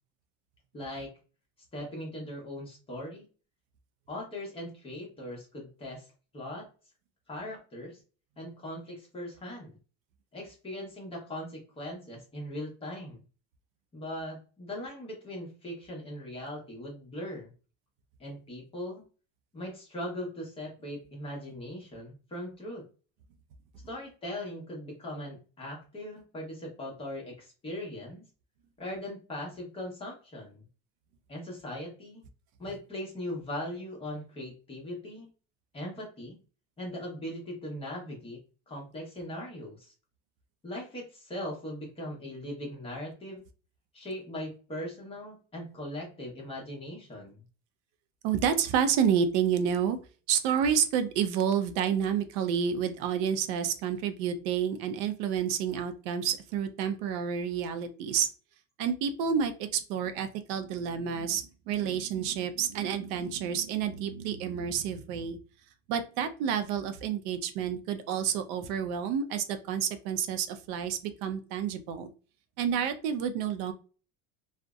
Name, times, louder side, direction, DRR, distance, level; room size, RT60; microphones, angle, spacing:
voice 1, 0.7-1.1 1.7-3.2 4.1-6.1 6.3-6.7 7.3-8.0 8.4-9.8 10.3-13.2 13.9-17.5 18.2-19.0 19.5-22.8 23.9-28.2 28.8-30.7 31.3-32.2 32.6-35.3 35.7-36.4 36.8-38.4 38.7-39.9 40.6-43.4 43.9-47.4, left 1 dB, 15° left, -2 dB, 0.8 m, -39 dB
voice 2, 48.2-50.0 50.3-58.3 58.8-65.4 65.9-72.1 72.6-73.7, right 8 dB, 75° right, 9 dB, 0.5 m, -29 dB
2.6 x 2.1 x 2.3 m, 0.36 s
cardioid pair, 150°, 33 cm